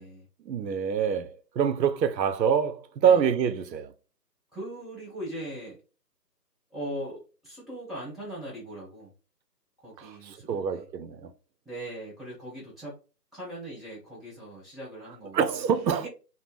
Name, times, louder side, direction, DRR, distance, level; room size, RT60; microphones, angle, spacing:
voice 1, 0.4-3.9 10.0-11.3 15.3-16.1, right 7 dB, 90° right, 0.5 m, -26 dB
voice 2, 4.5-5.8 6.7-9.1 9.8-10.9 11.7-13.0 13.3-15.4 15.9-16.1, right 1 dB, ahead, 0.6 m, -40 dB
2.6 x 2.0 x 3.2 m
figure-of-eight pair, 175°, 50 cm